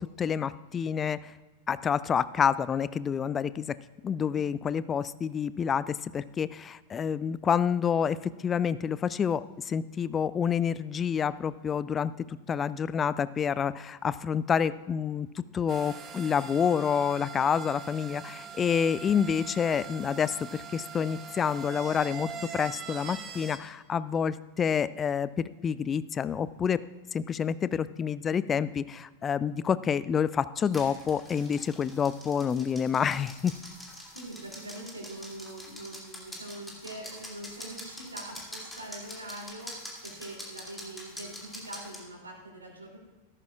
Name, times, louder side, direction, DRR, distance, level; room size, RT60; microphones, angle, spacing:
voice 1, 0.0-1.3 1.7-3.7 4.0-26.8 27.1-33.5, left 7 dB, 20° left, 17 dB, 0.4 m, -28 dB
sound 1, 15.7-23.6, right 6 dB, 30° right, 1.1 m, -42 dB
sound 2, 30.6-42.0, equal, 5° left, 2.6 m, -45 dB
voice 2, 34.1-43.0, right 1 dB, 75° right, -1 dB, 2.9 m, -43 dB
14.5 x 13.5 x 2.4 m, 1.2 s
figure-of-eight pair, 90°, 0 cm